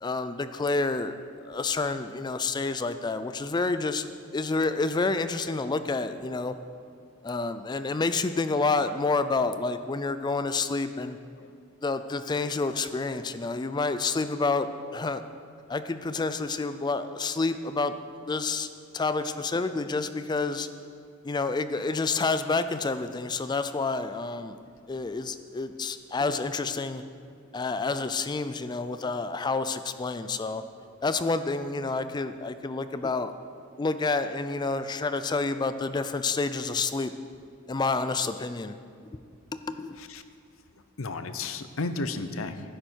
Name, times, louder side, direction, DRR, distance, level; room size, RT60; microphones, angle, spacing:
voice 1, 0.0-1.1 1.5-6.5 7.2-11.2 11.8-14.7 14.9-15.2 15.7-17.9 18.3-18.7 18.9-20.7 21.2-24.6 24.9-27.0 27.5-30.6 31.0-33.3 33.8-37.1 37.7-38.8 39.5-40.0, left 3 dB, 20° left, 11 dB, 0.3 m, -29 dB
voice 2, 41.0-42.7, left 3 dB, 70° left, 10 dB, 0.7 m, -33 dB
12.0 x 10.0 x 4.5 m, 2.2 s
head